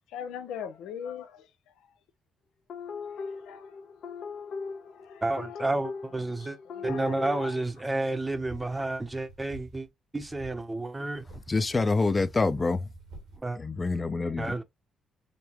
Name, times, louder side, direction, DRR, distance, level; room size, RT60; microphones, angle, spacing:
voice 1, 0.1-1.5 3.1-3.8 4.9-5.2 6.7-7.6, left 8 dB, 90° left, 0.7 m, -40 dB
sound 1, 2.7-7.5, left 5 dB, 60° left, 0.9 m, -39 dB
voice 2, 5.2-6.6 6.8-9.9 10.1-11.2 13.4-13.6 14.4-14.6, right 2 dB, 15° right, 0.8 m, -30 dB
sound 2, 8.2-9.9 10.1-10.6 11.1-13.4, right 2 dB, 90° right, 1.9 m, -48 dB
voice 3, 11.5-12.9 13.6-14.5, left 3 dB, 25° left, 0.6 m, -26 dB
5.3 x 2.1 x 3.0 m
cardioid pair, 90°, 0 cm